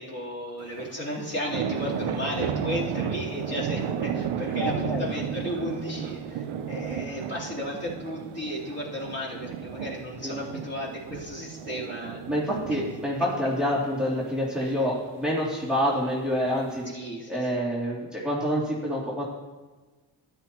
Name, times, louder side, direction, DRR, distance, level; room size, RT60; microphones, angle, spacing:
voice 1, 0.0-12.2 12.7-12.8 14.6-14.7 16.9-17.6, left 1 dB, 30° left, -7 dB, 3.7 m, -34 dB
sound 1, 0.6-16.9, right 8 dB, 75° right, 0.9 m, -34 dB
voice 2, 4.6-5.0 10.2-10.3 12.3-16.8 17.3-19.2, equal, ahead, -6 dB, 2.8 m, -27 dB
13.0 x 9.6 x 3.1 m, 1.3 s
cardioid pair, 70°, 50 cm